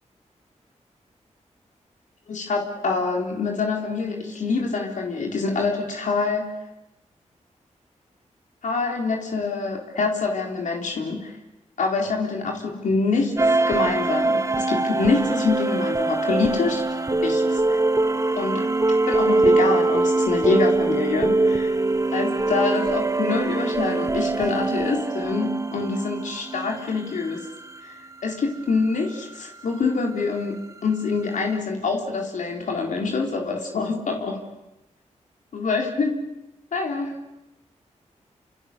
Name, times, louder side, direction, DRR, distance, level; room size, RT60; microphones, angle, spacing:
voice 1, 2.3-6.5 8.6-11.4 11.8-16.8 17.2-17.8 18.3-18.7 19.1-21.8 22.1-27.5 27.8-27.9 28.2-34.4 35.5-36.2 36.7-37.2, left 4 dB, 80° left, 1 dB, 4.0 m, -25 dB
sound 1, 13.4-27.5, right 2 dB, 25° right, 1.4 m, -23 dB
29.0 x 27.5 x 6.9 m, 0.94 s
cardioid pair, 75°, 13 cm